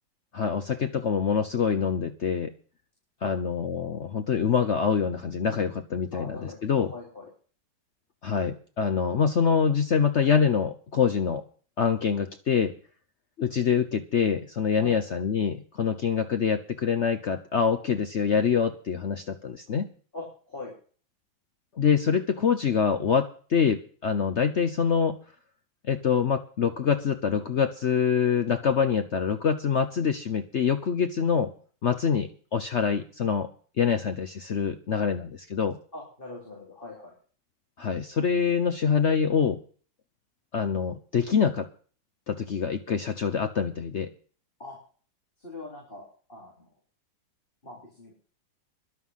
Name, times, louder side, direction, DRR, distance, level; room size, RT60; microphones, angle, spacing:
voice 1, 0.3-2.5 3.2-6.9 8.2-11.4 11.8-12.7 13.4-19.9 21.8-25.2 25.9-31.5 31.8-33.5 33.8-35.8 37.8-39.6 40.5-41.7 42.3-44.1, left 6 dB, 55° left, 9 dB, 0.9 m, -25 dB
voice 2, 6.1-7.3 14.8-15.0 20.1-20.7 35.9-37.1 44.6-44.8 45.4-46.7 47.6-48.2, left 2 dB, 30° left, -2 dB, 3.8 m, -42 dB
12.0 x 11.5 x 5.6 m, 0.42 s
omnidirectional pair, 1.9 m